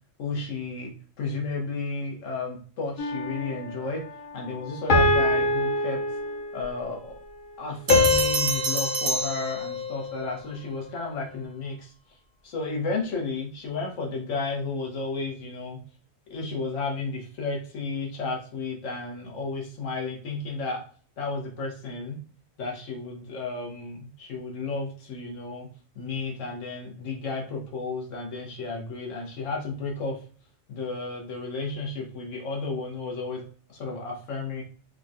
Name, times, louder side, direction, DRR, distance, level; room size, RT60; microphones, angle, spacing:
voice 1, 0.2-4.1 4.3-6.0 6.5-7.2 7.6-11.9 12.4-15.8 16.3-20.8 21.2-22.2 22.6-25.7 26.0-30.2 30.7-34.6, left 3 dB, 80° left, 0 dB, 1.3 m, -33 dB
sound 1, 3.0-3.7 4.9-6.7 7.9-10.3, left 2 dB, 50° left, 0.7 m, -25 dB
sound 2, 7.9-10.1, right 2 dB, 70° right, 0.9 m, -28 dB
3.7 x 2.2 x 2.5 m, 0.43 s
omnidirectional pair, 1.3 m